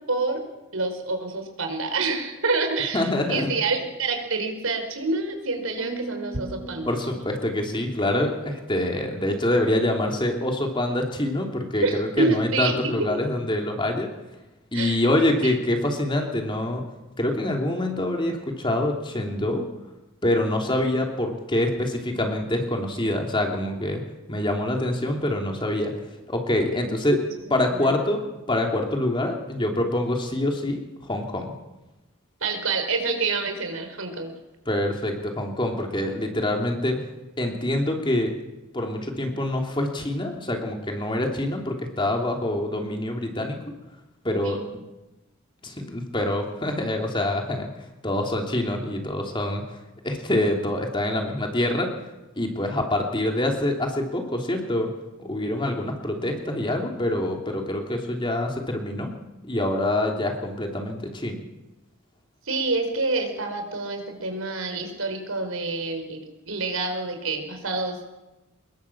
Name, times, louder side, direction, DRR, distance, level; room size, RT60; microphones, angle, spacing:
voice 1, 0.1-0.4 0.7-6.9 11.8-12.7 14.7-15.0 15.4-15.5 26.7-26.9 27.7-27.9 32.4-34.3 44.4-44.6 62.4-68.1, right 3 dB, 85° right, 5 dB, 4.8 m, -27 dB
voice 2, 2.9-3.5 6.8-14.1 14.7-16.8 17.2-19.7 20.2-24.0 24.3-25.9 26.3-27.2 27.5-30.8 31.1-31.5 34.7-37.0 37.4-38.3 38.7-43.6 44.2-44.8 45.6-47.7 48.0-49.6 50.0-51.9 52.4-54.9 55.2-59.1 59.4-61.4, left 1 dB, 25° left, 2 dB, 3.0 m, -25 dB
sound 1, 5.8-9.2, right 4 dB, 5° left, 3.9 m, -41 dB
24.0 x 21.5 x 7.3 m, 1.0 s
head